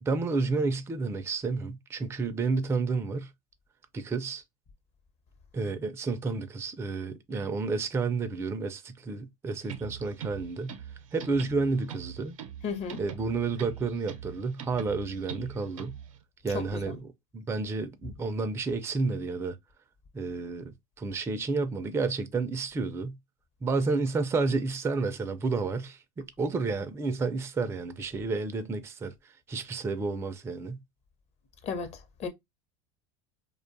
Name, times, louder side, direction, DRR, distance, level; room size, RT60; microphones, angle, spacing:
voice 1, 0.0-3.3 3.9-4.4 5.5-10.8 11.1-12.4 13.0-16.0 16.4-17.0 17.3-19.6 20.1-23.2 23.6-30.8, right 4 dB, 15° right, 0.3 m, -30 dB
sound 1, 9.6-16.2, right 9 dB, 90° right, 0.6 m, -43 dB
voice 2, 12.6-13.0 16.5-17.0 31.6-32.3, left 5 dB, 40° left, 0.7 m, -35 dB
2.4 x 2.2 x 2.5 m
hypercardioid pair, 95°, 17 cm